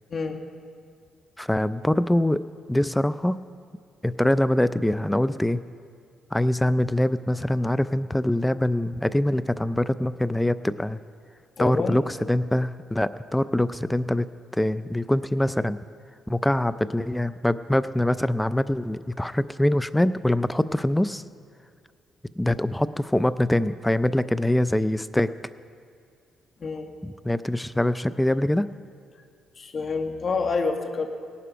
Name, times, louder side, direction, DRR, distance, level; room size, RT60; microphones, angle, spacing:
voice 1, 1.4-2.4 2.7-3.4 4.0-5.6 6.3-11.0 11.6-14.3 14.5-15.8 16.3-21.2 22.4-25.3 27.0-28.7, left 1 dB, 5° left, 14 dB, 0.4 m, -24 dB
voice 2, 11.6-12.0 26.6-26.9 29.6-31.1, left 4 dB, 45° left, 5 dB, 1.5 m, -27 dB
18.5 x 11.0 x 5.1 m, 2.2 s
cardioid pair, 90°, 0 cm